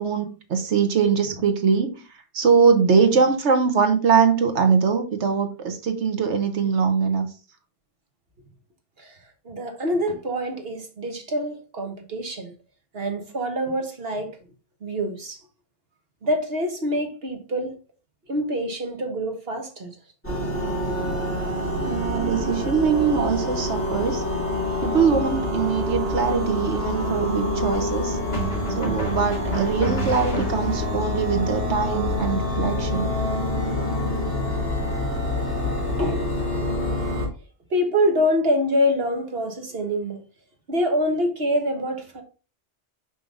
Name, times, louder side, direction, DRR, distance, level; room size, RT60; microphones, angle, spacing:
voice 1, 0.0-2.0 2.3-7.3 21.8-24.2 24.8-28.2 28.8-33.1, right 5 dB, 80° right, 1.3 m, -22 dB
voice 2, 9.4-12.5 12.9-14.4 14.8-15.4 16.2-17.8 18.3-19.9 36.0-36.2 36.5-36.7 37.7-40.2 40.7-42.2, equal, 60° right, 1.6 m, -25 dB
sound 1, 20.2-37.3, left 1 dB, 10° left, 3.6 m, -26 dB
sound 2, 25.7-25.9 28.3-31.0, right 3 dB, 60° left, 2.7 m, -31 dB
5.6 x 5.5 x 3.8 m
omnidirectional pair, 1.2 m